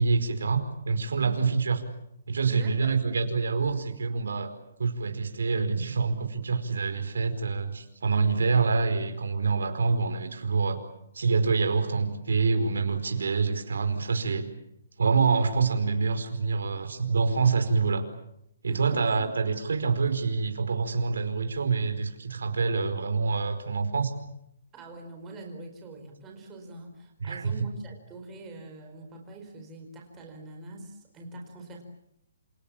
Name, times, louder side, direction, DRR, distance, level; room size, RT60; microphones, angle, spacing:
voice 1, 0.0-1.8 2.3-4.5 4.8-10.8 11.1-14.5 15.0-18.0 18.6-24.1 27.2-27.5, right 4 dB, 80° right, 7 dB, 4.7 m, -26 dB
voice 2, 1.2-1.5 2.5-3.0 18.7-19.3 24.7-31.8, right 2 dB, 10° right, 2 dB, 4.5 m, -43 dB
28.5 x 27.5 x 7.4 m, 0.79 s
hypercardioid pair, 175°, 0 cm